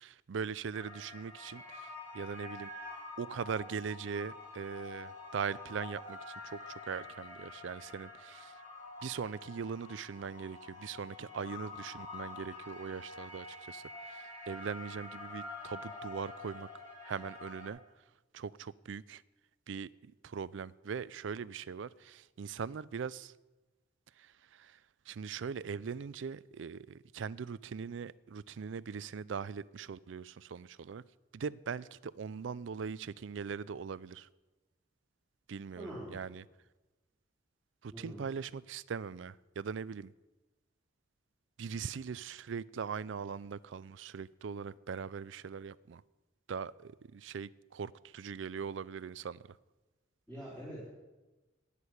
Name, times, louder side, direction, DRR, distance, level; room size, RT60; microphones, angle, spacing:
voice 1, 0.0-2.7 3.2-8.6 9.0-16.7 17.0-17.8 18.3-19.2 19.7-23.3 24.2-24.8 25.1-31.0 31.3-34.3 35.5-36.4 37.8-40.1 41.6-46.0 46.5-49.4, right 6 dB, 70° right, 0.4 m, -41 dB
sound 1, 0.7-17.7, left 3 dB, 40° left, 6.3 m, -47 dB
voice 2, 35.8-36.2 37.9-38.2 50.3-50.9, right 1 dB, 10° left, 4.3 m, -44 dB
11.5 x 8.4 x 9.9 m
head